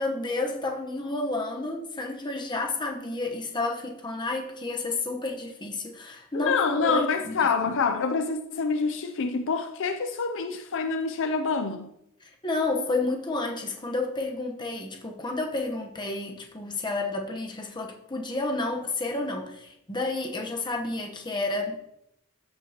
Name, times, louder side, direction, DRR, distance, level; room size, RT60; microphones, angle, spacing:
voice 1, 0.0-7.3 12.4-21.8, left 2 dB, 20° left, 1.1 m, -30 dB
voice 2, 6.3-11.9, left 5 dB, 60° left, 0.5 m, -26 dB
13.5 x 5.3 x 3.0 m
head